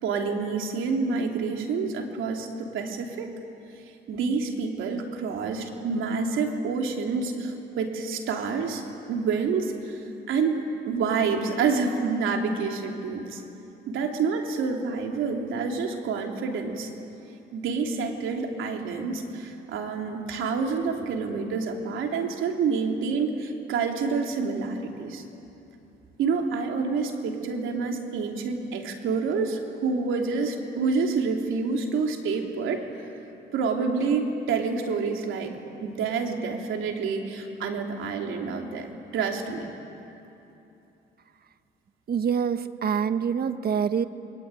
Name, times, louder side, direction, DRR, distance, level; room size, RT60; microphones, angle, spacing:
voice 1, 0.0-3.3 4.1-13.4 13.9-16.9 17.5-25.2 26.2-32.8 33.5-35.5 35.8-39.7, right 4 dB, 80° right, 2 dB, 3.3 m, -28 dB
voice 2, 42.1-44.0, right 7 dB, 50° right, 11 dB, 1.3 m, -25 dB
29.5 x 22.0 x 9.1 m, 2.9 s
cardioid pair, 90°, 20 cm